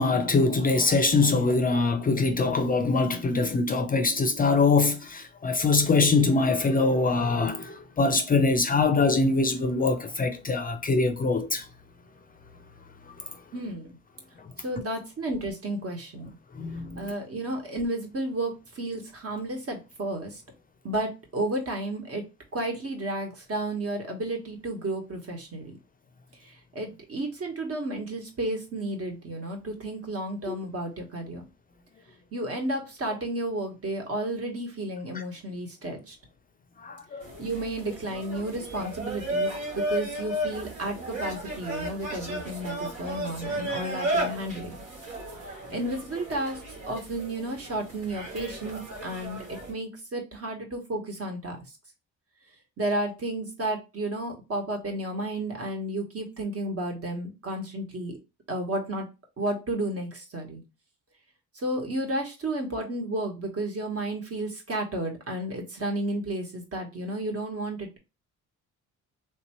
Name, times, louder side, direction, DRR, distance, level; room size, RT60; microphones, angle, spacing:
voice 1, 0.0-11.7 16.6-17.0 30.5-30.6 35.1-35.2 36.8-37.3, left 3 dB, 30° left, 0.4 m, -23 dB
voice 2, 13.5-14.0 14.6-16.3 17.0-20.4 20.8-22.2 22.5-25.8 26.7-31.4 32.3-36.2 37.4-44.7 45.7-46.6 46.9-51.6 52.8-58.2 58.5-59.1 59.4-60.6 61.6-68.0, right 1 dB, 50° right, 1.4 m, -32 dB
sound 1, 37.2-49.7, right 1 dB, 85° right, 2.1 m, -34 dB
3.3 x 2.8 x 3.0 m
cardioid pair, 90°, 30 cm